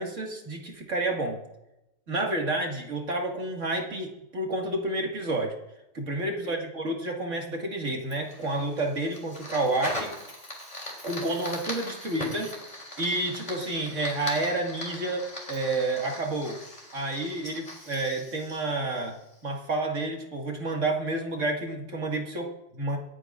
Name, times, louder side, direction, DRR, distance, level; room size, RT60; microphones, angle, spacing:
voice 1, 0.0-1.4 2.1-5.5 5.9-10.1 11.0-12.5 13.0-16.6 16.9-19.2 19.4-23.0, right 2 dB, 65° right, 1 dB, 2.4 m, -30 dB
Fire, 8.1-19.5, left 1 dB, 30° left, 3.4 m, -40 dB
27.0 x 9.7 x 2.5 m, 0.90 s
omnidirectional pair, 1.4 m